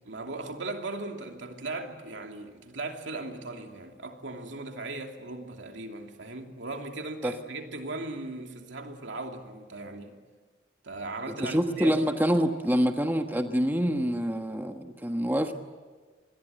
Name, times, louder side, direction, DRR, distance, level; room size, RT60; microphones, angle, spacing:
voice 1, 0.1-10.1 10.8-12.0, right 2 dB, 85° right, 2.8 m, -38 dB
voice 2, 11.4-15.5, equal, 10° right, 1.3 m, -26 dB
27.0 x 21.0 x 9.2 m
head